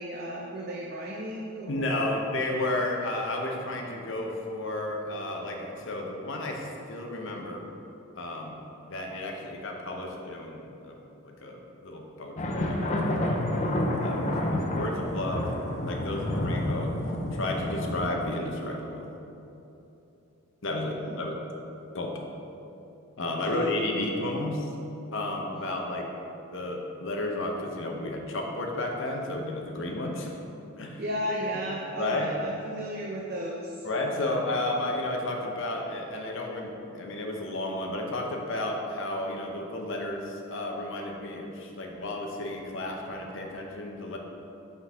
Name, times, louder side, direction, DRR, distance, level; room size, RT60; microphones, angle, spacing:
voice 1, 0.0-2.2 20.9-21.3 23.5-24.0 31.0-33.8 34.1-34.4, equal, 45° right, -2 dB, 0.6 m, -35 dB
voice 2, 1.7-7.7 8.2-8.6 8.8-11.0 11.2-15.5 15.8-16.9 17.3-19.1 20.6-21.3 21.9-22.2 23.2-24.7 25.1-26.1 26.5-30.3 30.8-31.0 32.0-32.3 33.8-44.2, left 1 dB, 55° left, 1 dB, 0.8 m, -32 dB
sound 1, 12.4-18.1, left 1 dB, 30° left, 0.5 m, -29 dB
6.0 x 3.9 x 5.4 m, 2.9 s
head